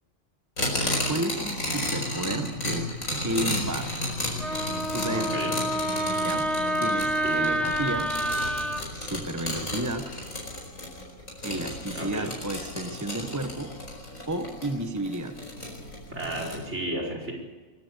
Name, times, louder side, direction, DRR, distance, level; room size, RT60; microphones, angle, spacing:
sound 1, 0.6-16.6, left 1 dB, 90° left, 5.3 m, -33 dB
voice 1, 1.0-3.9 4.9-5.6 6.2-6.5 6.8-8.1 9.0-10.1 11.4-13.7 14.3-15.3, right 1 dB, 15° right, 7 dB, 1.1 m, -32 dB
Wind instrument woodwind instrument, 4.4-8.8, right 1 dB, ahead, 1.3 m, -28 dB
voice 2, 5.1-5.6 7.2-7.6 12.0-12.3 16.1-17.3, right 1 dB, 60° right, 0 dB, 5.2 m, -33 dB
23.5 x 15.0 x 8.3 m, 1.4 s
omnidirectional pair, 1.4 m